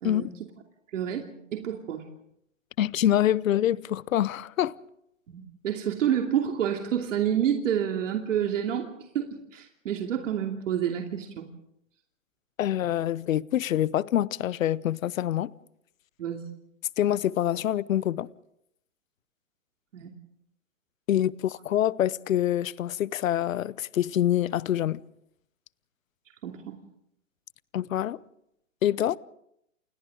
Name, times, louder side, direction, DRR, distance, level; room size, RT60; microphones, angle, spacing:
voice 1, 0.0-0.3 0.9-2.0 5.3-8.9 9.1-11.5 16.2-16.4 19.9-20.1 26.4-26.8, right 9 dB, 70° right, 2.8 m, -29 dB
voice 2, 2.8-4.8 12.6-15.5 17.0-18.3 21.1-25.0 27.7-28.2 28.8-29.2, left 11 dB, 80° left, 0.8 m, -26 dB
29.0 x 28.0 x 3.8 m
hypercardioid pair, 140°, 39 cm